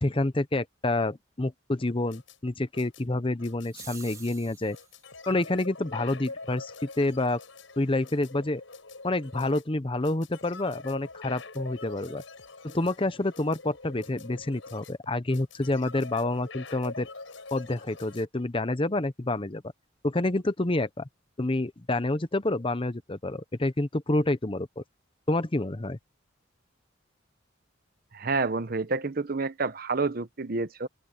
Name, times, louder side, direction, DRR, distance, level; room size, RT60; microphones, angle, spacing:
voice 1, 0.0-4.8 5.3-7.4 7.8-8.6 9.0-12.2 12.6-17.1 17.5-19.6 20.0-21.1 21.4-24.8 25.3-26.0, left 2 dB, 25° left, 0.8 m, -28 dB
sound 1, 1.8-18.3, left 3 dB, 85° left, 5.2 m, -45 dB
sound 2, 3.6-5.0, right 5 dB, 15° right, 2.3 m, -46 dB
voice 2, 28.1-30.9, right 3 dB, 50° right, 0.9 m, -29 dB
open air
head